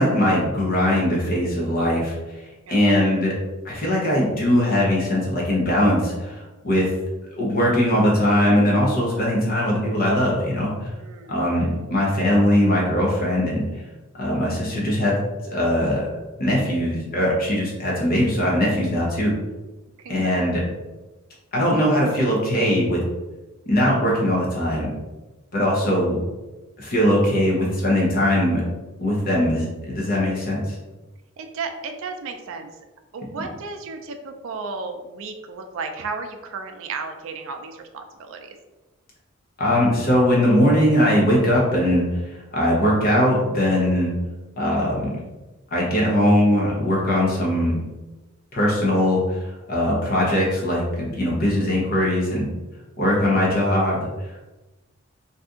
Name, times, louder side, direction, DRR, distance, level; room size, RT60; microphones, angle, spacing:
voice 1, 0.0-2.2 2.7-3.3 3.6-6.9 7.4-10.7 11.3-13.6 14.2-15.1 15.5-16.1 16.4-19.3 20.1-20.6 21.5-23.0 23.7-24.9 25.5-26.2 26.8-28.6 29.0-29.6 29.9-30.8 39.6-44.1 44.6-45.1 45.7-47.7 48.5-52.5 53.0-54.0, left 1 dB, 45° left, -4 dB, 0.7 m, -20 dB
voice 2, 2.7-3.0 10.9-11.7 20.0-20.5 31.4-32.7 33.1-38.5, right 4 dB, 65° right, 5 dB, 0.4 m, -34 dB
2.7 x 2.4 x 3.6 m, 1.1 s
head